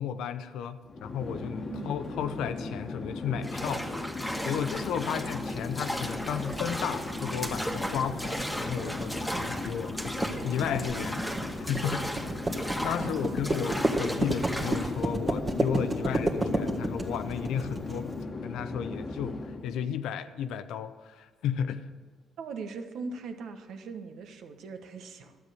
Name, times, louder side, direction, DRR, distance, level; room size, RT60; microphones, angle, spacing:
voice 1, 0.0-3.8 4.4-11.2 11.7-12.1 12.6-21.9, left 8 dB, 85° left, 11 dB, 0.6 m, -34 dB
Chatter / Fixed-wing aircraft airplane, 0.8-19.8, left 2 dB, 35° left, 1.2 m, -37 dB
sound 1, 3.4-15.0, equal, ahead, 1.5 m, -36 dB
sound 2, 6.4-18.0, right 1 dB, 30° right, 1.6 m, -31 dB
voice 2, 9.3-9.8 13.0-13.4 22.4-25.4, right 4 dB, 75° right, 7 dB, 1.2 m, -41 dB
12.5 x 8.0 x 6.8 m, 1.4 s
cardioid pair, 90°, 0 cm